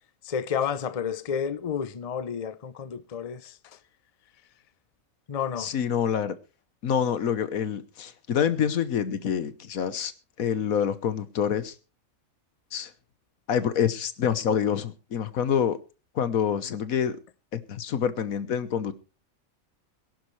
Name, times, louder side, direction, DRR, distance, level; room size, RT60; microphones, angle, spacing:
voice 1, 0.2-3.5 5.3-5.7, left 7 dB, 35° left, 0.7 m, -30 dB
voice 2, 5.6-6.3 6.8-10.1 10.4-11.7 12.7-12.9 13.5-15.8 16.1-17.2 17.5-18.9, left 8 dB, 90° left, 1.5 m, -26 dB
22.5 x 11.0 x 3.2 m
omnidirectional pair, 1.4 m